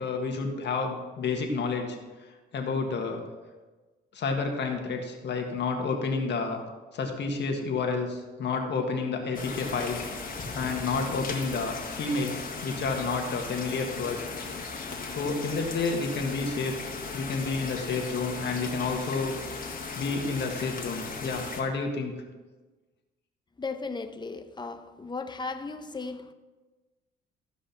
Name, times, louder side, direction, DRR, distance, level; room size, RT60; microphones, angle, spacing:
voice 1, 0.0-2.0 2.5-3.2 4.1-6.6 6.9-10.0 10.5-14.3 15.1-16.7 17.1-19.3 20.0-22.2, left 4 dB, 60° left, 1.7 m, -30 dB
sound 1, 9.3-21.6, left 4 dB, 45° left, 2.0 m, -37 dB
voice 2, 23.6-26.3, left 4 dB, 20° left, 0.8 m, -36 dB
14.5 x 5.1 x 5.8 m
cardioid pair, 90°, 20 cm